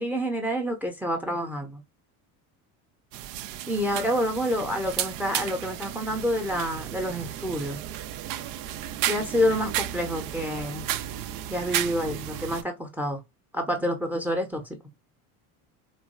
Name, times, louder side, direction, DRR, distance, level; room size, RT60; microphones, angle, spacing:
voice 1, 0.0-1.8 3.7-7.8 9.0-10.9 11.5-13.2 13.5-14.6, equal, 5° right, 0.7 m, -28 dB
sound 1, 3.1-12.6, right 12 dB, 55° right, 0.6 m, -33 dB
4.1 x 2.3 x 2.2 m
supercardioid pair, 120°, 41 cm